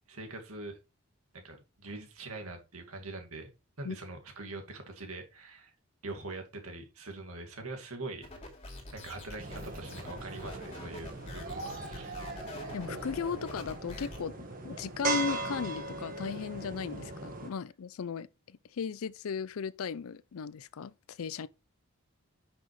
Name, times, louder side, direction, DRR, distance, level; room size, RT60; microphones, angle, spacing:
voice 1, 0.1-0.8 1.3-3.5 3.8-5.7 6.0-8.3 8.9-12.2, right 2 dB, 80° right, 2.1 m, -43 dB
sound 1, 8.2-14.2, left 2 dB, 25° left, 2.5 m, -46 dB
sound 2, 9.4-17.5, right 2 dB, 40° right, 1.5 m, -38 dB
voice 2, 12.7-21.5, left 6 dB, 75° left, 0.4 m, -36 dB
10.5 x 6.0 x 3.2 m
head